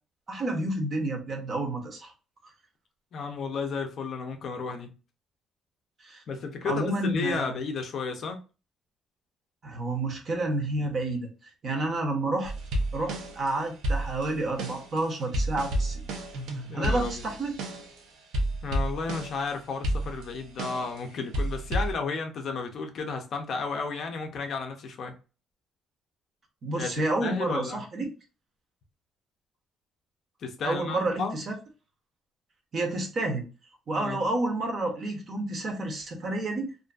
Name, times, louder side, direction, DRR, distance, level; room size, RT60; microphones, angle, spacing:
voice 1, 0.3-2.1 6.0-6.2 6.6-7.5 9.6-12.5 12.9-16.0 16.7-17.6 26.6-28.1 30.6-31.5 32.7-33.5 33.9-36.7, right 2 dB, 35° right, 0.6 m, -30 dB
voice 2, 3.1-4.9 6.3-8.4 16.7-17.2 18.6-25.1 26.8-26.9 27.2-27.8 30.4-31.4 34.0-34.2, left 4 dB, 45° left, 0.5 m, -33 dB
sound 1, 12.4-13.5 13.8-18.0 18.3-19.5 19.8-21.0 21.3-21.9, right 1 dB, 90° right, 0.6 m, -31 dB
2.5 x 2.4 x 2.2 m
cardioid pair, 160°, 0 cm